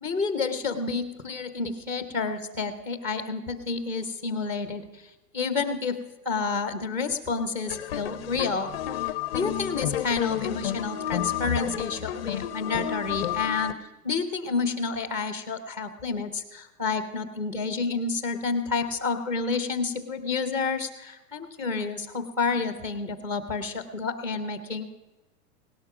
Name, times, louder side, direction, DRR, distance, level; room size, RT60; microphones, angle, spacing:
voice 1, 0.0-6.0 6.2-8.7 9.3-24.9, left 4 dB, 5° right, 9 dB, 0.6 m, -30 dB
sound 1, 7.7-13.7, left 12 dB, 40° left, 0.5 m, -31 dB
17.5 x 12.0 x 6.0 m, 1.1 s
hypercardioid pair, 160°, 48 cm